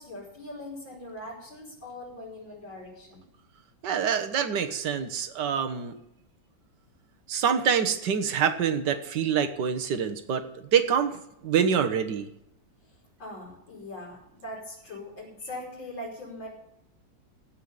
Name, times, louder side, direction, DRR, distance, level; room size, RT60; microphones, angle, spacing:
voice 1, 0.0-3.2 13.2-16.5, left 1 dB, 70° left, -7 dB, 6.2 m, -41 dB
voice 2, 3.8-6.0 7.3-10.4 10.7-12.3, right 7 dB, 60° right, 8 dB, 1.7 m, -26 dB
16.5 x 5.8 x 8.9 m, 0.81 s
omnidirectional pair, 2.1 m